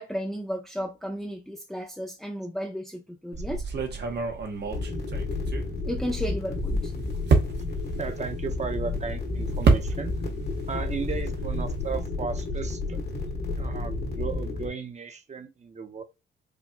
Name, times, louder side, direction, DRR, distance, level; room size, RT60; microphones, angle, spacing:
voice 1, 0.0-3.6 5.9-6.9, equal, ahead, 0.7 m, -33 dB
sound 1, 3.3-6.0 6.4-10.4 10.7-12.0, right 4 dB, 55° right, 1.1 m, -28 dB
sound 2, 4.7-14.7, left 3 dB, 50° left, 1.5 m, -31 dB
voice 2, 4.7-5.1 8.0-10.2 10.7-13.0 13.6-16.0, right 5 dB, 35° right, 0.8 m, -35 dB
5.1 x 2.6 x 2.2 m
cardioid pair, 80°, 20 cm